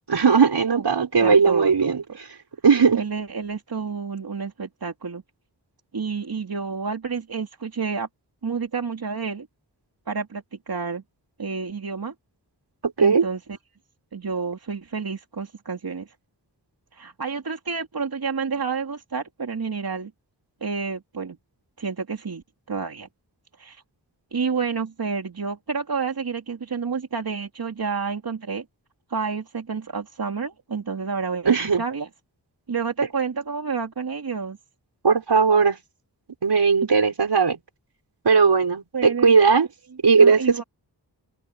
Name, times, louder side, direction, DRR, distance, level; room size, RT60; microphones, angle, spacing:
voice 1, 0.1-2.0 2.6-3.0 13.0-13.3 31.4-31.8 35.0-35.8 36.4-37.6 38.2-39.7 40.0-40.7, right 5 dB, 80° right, 5.9 m, -18 dB
voice 2, 1.2-1.9 2.9-5.2 5.9-8.1 8.4-9.5 10.1-11.0 11.4-12.1 13.0-13.6 14.1-16.1 16.9-20.1 20.6-21.4 21.8-22.4 22.7-23.1 23.6-23.8 24.3-28.6 29.1-32.1 32.7-34.6 38.9-39.3 40.2-40.6, right 5 dB, 60° right, 2.6 m, -29 dB
open air
wide cardioid pair, 70°, 40 cm